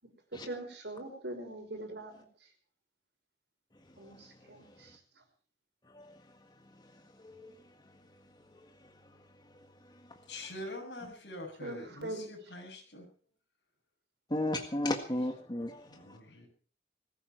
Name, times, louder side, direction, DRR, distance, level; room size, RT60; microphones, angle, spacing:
voice 1, 0.0-2.5 4.0-5.0 11.6-12.2, right 1 dB, 75° right, 4 dB, 5.5 m, -42 dB
voice 2, 10.3-13.1 15.0-15.3 15.9-16.5, left 1 dB, 70° left, -1 dB, 7.0 m, -45 dB
voice 3, 14.3-15.8, left 1 dB, 25° left, 5 dB, 1.7 m, -33 dB
21.0 x 14.0 x 4.6 m, 0.41 s
head